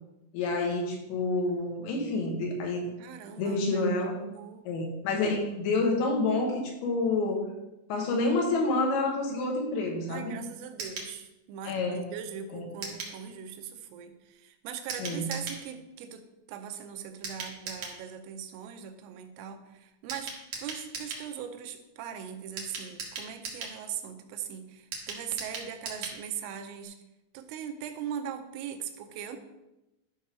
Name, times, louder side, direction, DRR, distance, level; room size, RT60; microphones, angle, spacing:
voice 1, 0.3-2.9 3.4-4.2 4.6-7.5 7.9-10.3 11.6-12.0 12.5-12.7 15.0-15.3, left 2 dB, 75° left, 1 dB, 3.2 m, -28 dB
voice 2, 3.0-3.7 4.1-4.6 10.1-20.3 20.6-27.0 27.3-29.4, right 8 dB, 85° right, 6 dB, 3.3 m, -40 dB
sound 1, 10.8-11.1 12.8-13.2 14.9-15.6 17.2-18.0 20.1-21.3 22.6-23.8 24.9-26.2 26.5-26.6 26.8-26.9, right 4 dB, 70° right, 1.7 m, -38 dB
13.0 x 5.4 x 3.5 m, 0.96 s
omnidirectional pair, 5.8 m